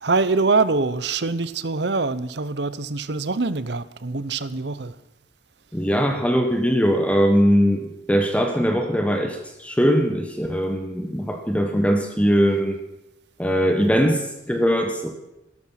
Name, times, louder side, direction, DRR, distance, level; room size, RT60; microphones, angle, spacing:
voice 1, 0.0-5.0, right 3 dB, 65° right, 0.9 m, -24 dB
voice 2, 5.7-12.8 13.4-15.1, equal, 5° left, 1.4 m, -21 dB
17.0 x 13.0 x 5.9 m
head